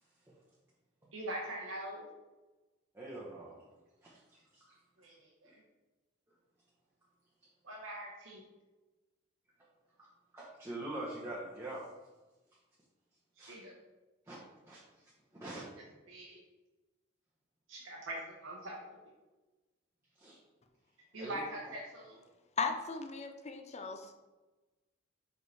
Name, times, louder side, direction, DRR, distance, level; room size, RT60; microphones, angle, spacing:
voice 1, 1.1-2.1 5.0-5.6 7.6-8.4 13.4-13.8 16.1-16.4 17.7-19.0 21.1-22.3, right 1 dB, 80° right, -3 dB, 0.9 m, -43 dB
voice 2, 2.9-3.6 4.0-4.8 10.0-11.8 13.4-13.6 14.3-14.4 14.7-15.6 20.2-20.4 21.2-21.4, right 1 dB, 15° right, -6 dB, 1.0 m, -45 dB
voice 3, 22.6-24.1, left 4 dB, 35° left, 6 dB, 0.6 m, -37 dB
5.1 x 4.7 x 4.1 m, 1.2 s
head